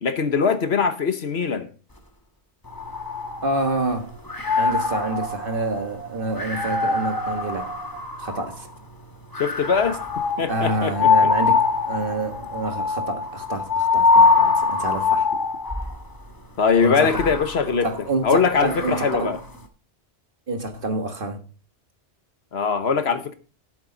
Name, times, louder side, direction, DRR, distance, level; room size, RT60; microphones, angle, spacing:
voice 1, 0.0-1.7 9.4-10.0 10.4-11.1 16.6-17.9 18.2-19.4 22.5-23.4, left 5 dB, 65° left, 1.3 m, -21 dB
sound 1, 2.7-3.9 4.3-8.6 9.3-16.0 16.8-19.4, left 4 dB, 20° left, 1.4 m, -23 dB
voice 2, 3.4-4.1 4.6-7.7 8.2-8.7 10.5-15.3 16.8-17.2 17.8-19.3 20.5-21.4, right 2 dB, 50° right, 1.7 m, -27 dB
12.5 x 7.8 x 3.9 m
omnidirectional pair, 1.2 m